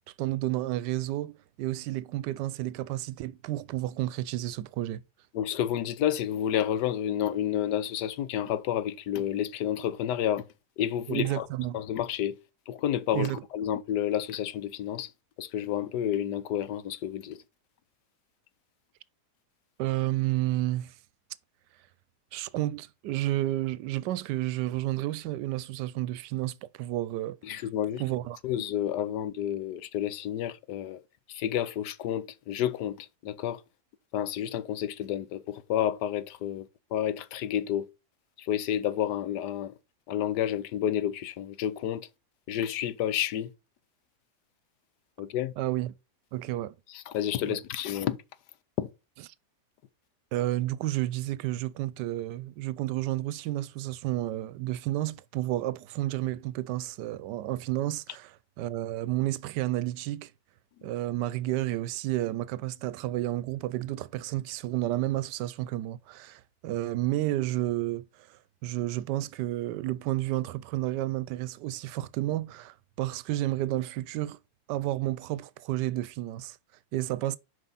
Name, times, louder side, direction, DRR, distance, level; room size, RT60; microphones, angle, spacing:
voice 1, 0.2-5.0 11.1-11.8 13.1-13.4 19.8-20.9 22.3-27.7 28.0-28.4 45.6-45.9 46.3-46.7 47.5-47.6 50.3-60.3 60.8-74.4 74.7-76.6 76.9-77.4, right 15 dB, 85° right, 1.2 m, -31 dB
voice 2, 5.3-10.4 10.8-11.5 11.7-12.4 12.7-13.3 13.5-15.1 15.4-17.4 27.4-28.0 28.4-31.0 31.3-33.6 34.1-36.7 36.9-37.9 38.4-39.7 40.1-42.1 42.5-43.5 45.2-45.5 47.1-48.2 48.8-48.9, left 10 dB, 80° left, 1.3 m, -30 dB
7.5 x 5.2 x 4.0 m
omnidirectional pair, 1.8 m